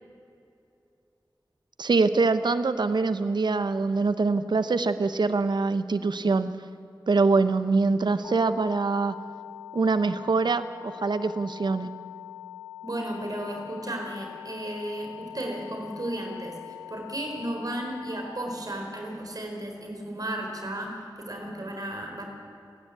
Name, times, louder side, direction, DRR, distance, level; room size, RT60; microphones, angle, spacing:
voice 1, 1.8-6.5 7.1-9.1 9.7-11.9, right 3 dB, 80° right, 12 dB, 0.8 m, -24 dB
sound 1, 8.2-18.3, left 11 dB, 75° left, 3.5 m, -43 dB
voice 2, 12.8-16.6 16.9-22.2, right 1 dB, 55° right, 2 dB, 4.6 m, -34 dB
29.0 x 11.0 x 8.6 m, 2.5 s
cardioid pair, 45°, 7 cm